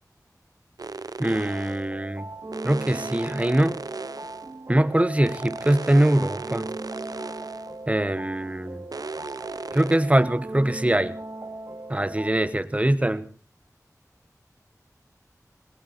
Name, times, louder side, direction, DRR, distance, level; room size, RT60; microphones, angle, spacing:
sound 1, 0.8-1.9 2.5-4.5 5.2-7.7 8.9-10.0, right 4 dB, 80° right, 0.7 m, -37 dB
voice 1, 1.2-2.2 2.6-3.8 4.7-6.7 7.9-8.8 9.7-11.1 11.9-13.2, right 1 dB, 20° right, 14 dB, 1.1 m, -22 dB
sound 2, 1.5-12.3, right 2 dB, 55° right, 2.5 m, -38 dB
19.0 x 18.0 x 4.1 m, 0.39 s
wide cardioid pair, 50°, 6 cm